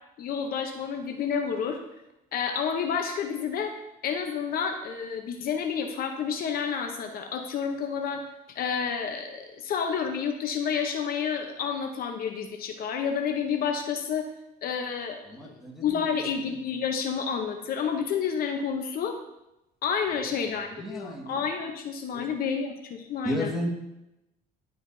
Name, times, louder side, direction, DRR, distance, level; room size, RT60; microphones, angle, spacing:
voice 1, 0.2-1.8 2.3-3.8 4.0-8.3 8.5-14.2 14.6-19.2 19.8-23.5, left 6 dB, 60° left, 5 dB, 0.8 m, -30 dB
voice 2, 15.3-16.0 20.7-21.4 22.1-22.3 23.2-23.7, equal, ahead, -1 dB, 1.6 m, -33 dB
11.0 x 4.9 x 2.7 m, 0.89 s
cardioid pair, 110°, 17 cm